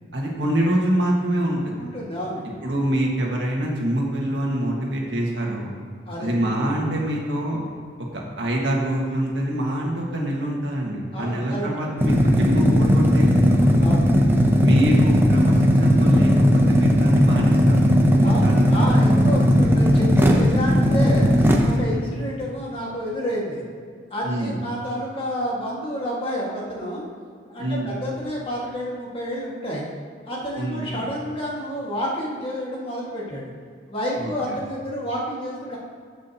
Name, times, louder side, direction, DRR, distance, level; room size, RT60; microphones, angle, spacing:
voice 1, 0.1-1.6 2.6-5.7 6.2-7.6 8.4-13.7 14.6-18.6 21.9-22.1 24.2-24.5 27.6-27.9 30.6-31.0 34.2-34.3, right 1 dB, 80° right, -2 dB, 1.8 m, -25 dB
voice 2, 1.8-2.5 6.1-6.3 11.1-11.7 13.8-14.2 18.2-21.3 21.6-23.6 24.1-27.0 27.5-29.9 30.3-33.5 33.9-35.8, equal, 30° left, -4 dB, 1.9 m, -29 dB
sound 1, 12.0-21.8, equal, 15° right, 0.7 m, -17 dB
14.0 x 6.2 x 2.9 m, 2.1 s
head